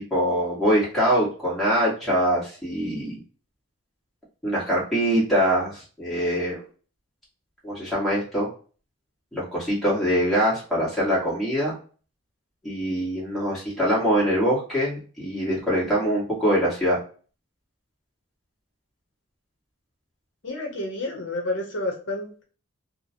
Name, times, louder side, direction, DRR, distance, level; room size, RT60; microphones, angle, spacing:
voice 1, 0.1-3.2 4.4-6.6 7.6-8.5 9.3-11.7 12.6-17.0, equal, ahead, -8 dB, 1.5 m, -23 dB
voice 2, 20.4-22.4, left 2 dB, 55° left, 1 dB, 0.7 m, -30 dB
2.9 x 2.3 x 2.6 m, 0.39 s
head